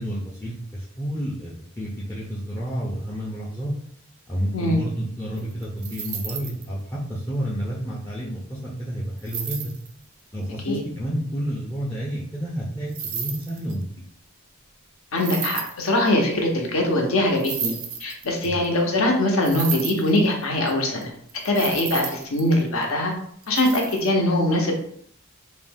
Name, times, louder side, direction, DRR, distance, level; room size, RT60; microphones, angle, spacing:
voice 1, 0.0-3.7 4.3-9.7 10.3-14.0 18.4-18.6, equal, 10° left, -4 dB, 0.4 m, -30 dB
sound 1, 5.4-6.6 9.2-9.9 12.9-13.8 15.2-16.2 17.3-18.7 19.4-20.7 21.0-21.1 21.3-22.9 23.4-24.1, right 7 dB, 80° right, 0.5 m, -32 dB
voice 2, 15.1-17.7 18.0-21.1 21.4-23.1 23.5-24.7, left 1 dB, 70° left, 1 dB, 0.7 m, -22 dB
2.6 x 2.1 x 3.4 m, 0.66 s
head